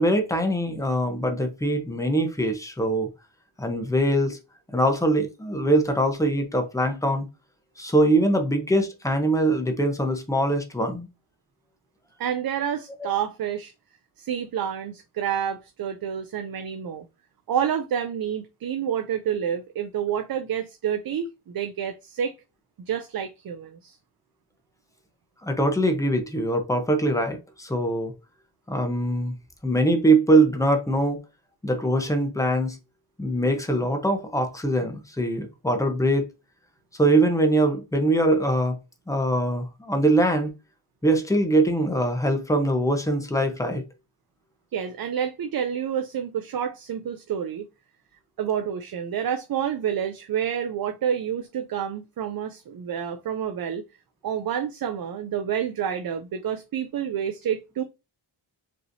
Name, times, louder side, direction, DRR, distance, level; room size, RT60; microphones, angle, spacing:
voice 1, 0.0-3.1 3.6-4.4 4.7-7.3 7.8-11.1 25.4-28.1 28.7-29.3 29.6-31.2 31.6-32.8 33.2-36.3 37.0-38.8 39.1-40.5 41.0-43.8, right 1 dB, 5° left, 0.8 m, -22 dB
voice 2, 12.2-13.7 14.2-17.0 17.5-22.4 22.8-24.0 44.7-47.7 48.4-53.8 54.2-57.8, right 8 dB, 50° right, 0.5 m, -28 dB
5.2 x 3.1 x 2.6 m
wide cardioid pair, 150°, 48 cm